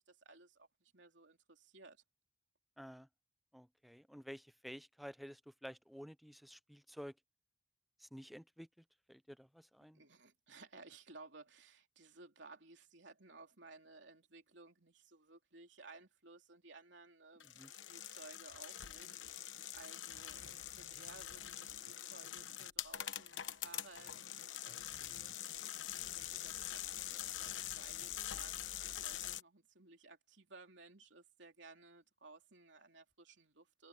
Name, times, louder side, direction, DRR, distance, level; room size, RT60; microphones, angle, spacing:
voice 1, 0.0-2.0 9.9-33.9, right 3 dB, 70° right, 3.2 m, -59 dB
voice 2, 2.8-3.1 3.5-7.2 8.0-10.0 17.4-17.7, equal, ahead, 0.6 m, -52 dB
sound 1, 17.4-29.4, left 11 dB, 90° left, 1.0 m, -45 dB
head